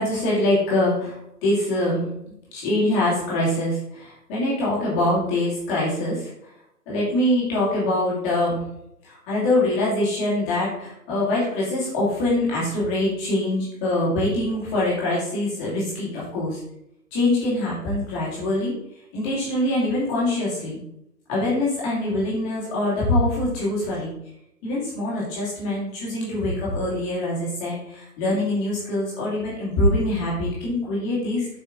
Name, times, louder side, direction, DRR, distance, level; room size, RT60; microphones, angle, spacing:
voice 1, 0.0-2.1 2.5-6.5 6.9-8.7 9.0-16.6 17.1-18.7 19.1-20.8 21.3-24.1 24.6-31.5, left 1 dB, 15° left, -6 dB, 2.6 m, -24 dB
7.8 x 6.1 x 3.8 m, 0.77 s
hypercardioid pair, 160°, 49 cm